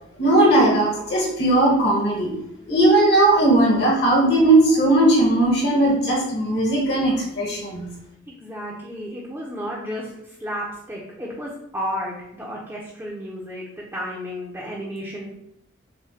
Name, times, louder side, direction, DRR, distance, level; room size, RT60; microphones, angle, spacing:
voice 1, 0.2-2.3 2.7-7.9, right 1 dB, 55° left, -3 dB, 1.2 m, -18 dB
voice 2, 8.3-15.3, equal, 10° right, -4 dB, 0.5 m, -32 dB
6.4 x 2.1 x 2.7 m, 0.81 s
head